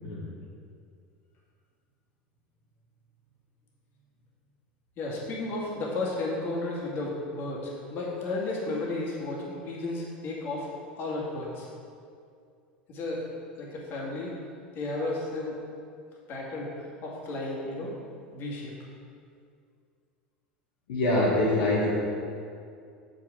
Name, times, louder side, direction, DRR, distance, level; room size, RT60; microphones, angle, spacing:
voice 1, 5.0-11.7 12.9-13.3 13.6-14.3 14.7-15.6 16.3-17.9 18.3-18.7, left 2 dB, 45° left, -3 dB, 1.9 m, -33 dB
voice 2, 20.9-21.9, left 1 dB, 70° left, -7 dB, 1.4 m, -24 dB
7.1 x 5.3 x 4.9 m, 2.3 s
hypercardioid pair, 80°, 5 cm